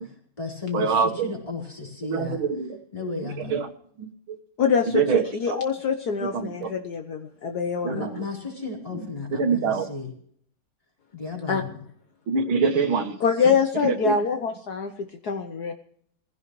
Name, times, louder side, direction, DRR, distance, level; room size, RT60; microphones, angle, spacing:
voice 1, 0.0-2.4 2.9-3.5 7.9-10.1 11.1-11.8, left 4 dB, 15° left, -2 dB, 4.2 m, -34 dB
voice 2, 0.7-1.3 2.0-2.8 3.5-3.7 4.0-4.4 4.9-5.6 6.3-6.7 7.8-8.1 9.4-9.9 12.3-13.2 13.8-14.2, right 5 dB, 85° right, 6 dB, 2.2 m, -24 dB
voice 3, 4.6-8.0 11.5-11.6 13.2-15.7, left 6 dB, 60° left, 6 dB, 1.3 m, -25 dB
19.5 x 16.0 x 3.1 m, 0.64 s
omnidirectional pair, 2.2 m